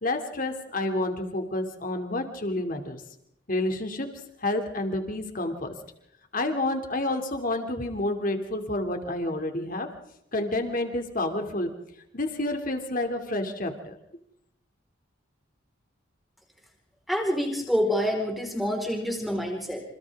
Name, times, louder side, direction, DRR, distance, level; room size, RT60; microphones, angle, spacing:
voice 1, 0.0-3.0 3.5-5.7 6.3-9.9 10.3-11.7 12.1-14.0, left 2 dB, 45° left, 5 dB, 2.7 m, -29 dB
voice 2, 17.1-19.8, equal, ahead, 0 dB, 4.5 m, -27 dB
28.0 x 27.5 x 3.7 m, 0.78 s
head